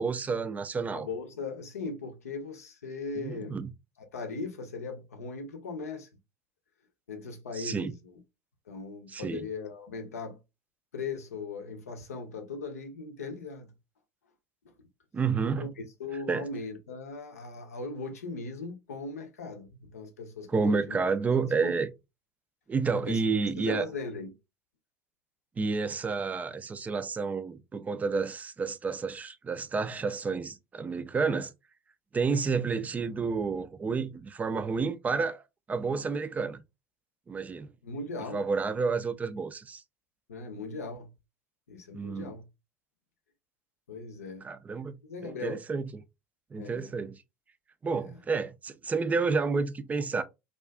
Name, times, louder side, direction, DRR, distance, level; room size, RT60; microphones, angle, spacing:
voice 1, 0.0-1.1 3.2-3.7 7.5-7.9 9.1-9.4 15.1-15.7 16.3-16.4 20.5-21.9 22.7-23.8 25.6-31.5 32.1-35.4 35.7-36.6 37.3-37.7 38.3-39.8 41.9-42.3 44.4-44.9 45.2-45.8 46.5-47.2 47.8-50.2, right 4 dB, 20° right, 0.3 m, -30 dB
voice 2, 0.9-3.6 4.0-6.1 7.1-8.1 8.7-10.4 10.9-13.7 14.6-14.7 15.6-21.0 21.3-21.8 22.9-24.4 37.8-38.4 40.3-41.1 41.7-42.5 43.9-44.5 45.0-45.6 46.6-46.9 47.9-48.2, left 3 dB, 80° left, 0.6 m, -39 dB
2.3 x 2.3 x 2.2 m
figure-of-eight pair, 75°, 8 cm